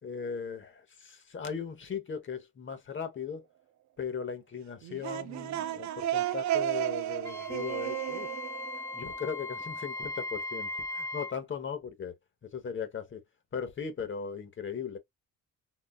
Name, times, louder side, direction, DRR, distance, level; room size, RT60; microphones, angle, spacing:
voice 1, 0.0-3.5 4.0-8.3 8.9-12.2 12.4-13.2 13.5-15.0, left 6 dB, 40° left, 0.9 m, -38 dB
sound 1, 4.8-9.6, right 12 dB, 65° right, 0.4 m, -33 dB
Wind instrument woodwind instrument, 7.2-11.4, left 2 dB, 10° left, 0.4 m, -38 dB
3.8 x 2.4 x 2.3 m
cardioid pair, 110°, 32 cm